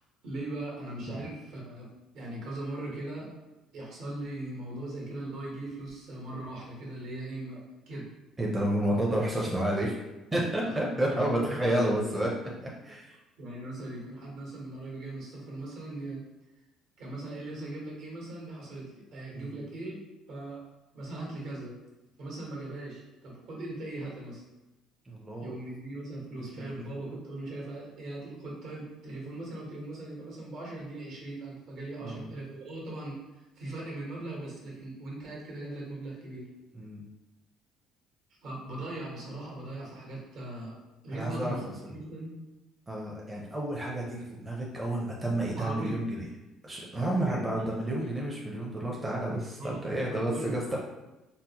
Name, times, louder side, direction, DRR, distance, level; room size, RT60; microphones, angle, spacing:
voice 1, 0.2-3.3 3.7-8.1 10.6-11.3 11.6-12.1 13.4-16.2 17.0-20.0 20.3-20.6 20.9-21.7 22.2-24.4 25.4-33.2 33.5-36.5 38.4-40.8 41.0-42.3 45.6-46.0 46.9-47.4 49.6-50.8, right 2 dB, 70° right, -3 dB, 1.3 m, -39 dB
voice 2, 8.4-9.9 10.3-12.3 12.8-13.1 19.3-19.6 25.1-25.5 32.0-32.3 36.7-37.0 41.1-41.5 42.9-46.3 46.6-50.8, right 1 dB, 15° right, -3 dB, 0.6 m, -30 dB
4.0 x 2.0 x 2.8 m, 1.0 s
cardioid pair, 115°, 0 cm